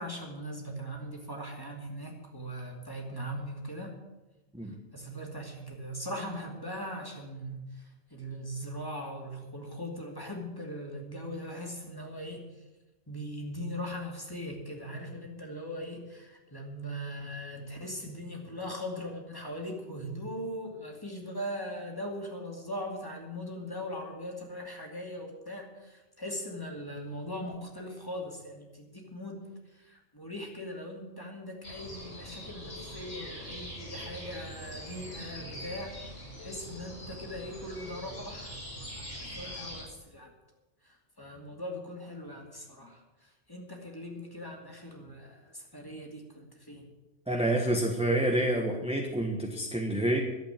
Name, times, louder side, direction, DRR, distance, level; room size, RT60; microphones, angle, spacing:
voice 1, 0.0-4.0 4.9-7.8 8.1-12.4 13.1-29.4 29.7-36.0 36.4-38.6 39.0-40.3 40.8-46.9, equal, 20° left, 0 dB, 2.6 m, -40 dB
sound 1, 31.6-39.8, equal, 65° left, 4.6 m, -43 dB
voice 2, 47.3-50.2, right 1 dB, 5° right, 1 dB, 1.2 m, -28 dB
12.0 x 8.1 x 9.0 m, 1.1 s
omnidirectional pair, 1.2 m